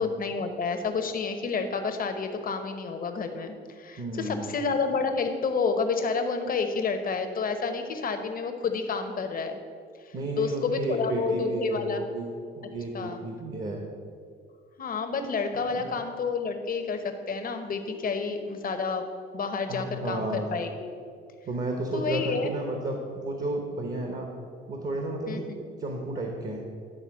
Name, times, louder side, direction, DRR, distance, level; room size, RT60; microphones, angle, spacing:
voice 1, 0.0-9.6 10.1-12.0 12.9-13.2 14.8-19.0 19.3-20.9 21.9-22.5 25.3-25.6, left 4 dB, 45° left, 6 dB, 0.9 m, -29 dB
voice 2, 4.0-4.5 10.1-12.3 12.5-13.8 15.7-15.8 19.7-20.5 21.4-24.3 24.7-25.5 25.8-26.6, right 2 dB, 40° right, 2 dB, 1.1 m, -32 dB
10.0 x 3.8 x 6.1 m, 2.3 s
cardioid pair, 90°, 20 cm